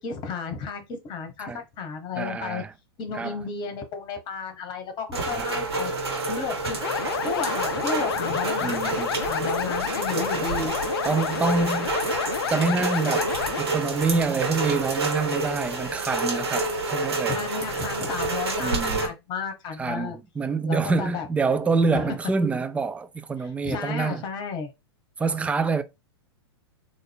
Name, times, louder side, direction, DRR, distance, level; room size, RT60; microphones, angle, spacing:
voice 1, 0.0-2.6 3.0-5.9 6.3-6.8 7.2-9.0 9.2-10.7 17.2-20.2 20.7-21.2 21.6-22.1 23.4-24.7, left 5 dB, 35° left, 1.2 m, -33 dB
voice 2, 2.2-2.7 3.1-3.4 5.3-5.5 8.6-9.1 11.0-11.9 12.5-13.3 13.6-17.5 18.6-19.1 19.8-24.2 25.2-25.8, right 4 dB, 10° right, 0.4 m, -26 dB
Rain, 5.1-19.1, right 3 dB, 70° right, 1.2 m, -28 dB
sound 1, 6.8-13.6, left 11 dB, 65° left, 0.4 m, -30 dB
3.8 x 2.5 x 3.5 m
hypercardioid pair, 100°, 14 cm